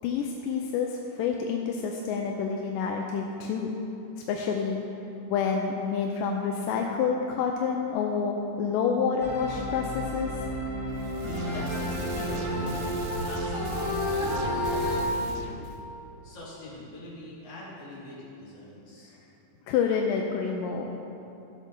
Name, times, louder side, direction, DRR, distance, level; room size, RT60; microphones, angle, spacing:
voice 1, 0.0-3.7 4.3-4.8 5.3-10.3 19.7-20.9, left 6 dB, 85° left, 1 dB, 2.3 m, -28 dB
sound 1, 9.2-15.0, left 1 dB, 35° right, 0.4 m, -31 dB
sound 2, 10.9-15.8, right 3 dB, 85° right, 2.4 m, -38 dB
voice 2, 11.3-15.7 16.2-19.1, left 2 dB, 60° left, -8 dB, 3.7 m, -43 dB
12.5 x 8.2 x 3.8 m, 2.9 s
omnidirectional pair, 3.8 m